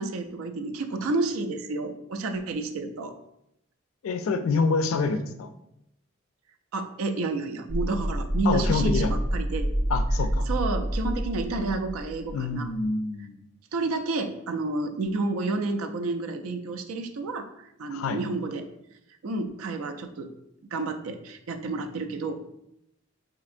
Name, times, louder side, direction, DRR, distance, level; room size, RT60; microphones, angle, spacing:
voice 1, 0.0-3.2 6.7-9.7 10.5-12.7 13.7-18.7 19.2-20.3 20.7-22.5, right 3 dB, 80° right, 7 dB, 0.4 m, -30 dB
voice 2, 4.0-5.5 8.4-9.1 9.9-10.5 12.3-13.4 17.9-18.2, left 4 dB, 75° left, 9 dB, 0.3 m, -27 dB
sound 1, 7.7-12.5, equal, 5° right, 0.5 m, -28 dB
4.2 x 2.8 x 2.5 m, 0.81 s
head